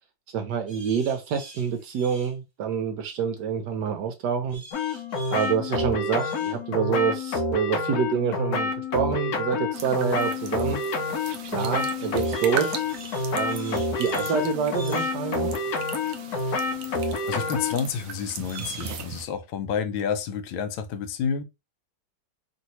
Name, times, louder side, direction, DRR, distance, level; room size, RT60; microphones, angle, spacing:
voice 1, 0.3-4.6 5.3-10.8 11.5-12.8 13.3-15.5, right 7 dB, 70° right, 1.1 m, -27 dB
sound 1, 0.7-2.4 4.5-5.6 6.1-6.6 12.2-14.4 14.7-15.2 18.4-19.0, right 2 dB, 25° right, 0.7 m, -45 dB
sound 2, 4.7-17.9, left 3 dB, 65° left, 1.0 m, -28 dB
sound 3, 9.7-19.2, right 7 dB, 85° right, 0.7 m, -39 dB
voice 2, 17.3-21.4, left 7 dB, 85° left, 1.3 m, -29 dB
3.1 x 2.7 x 2.8 m
omnidirectional pair, 2.1 m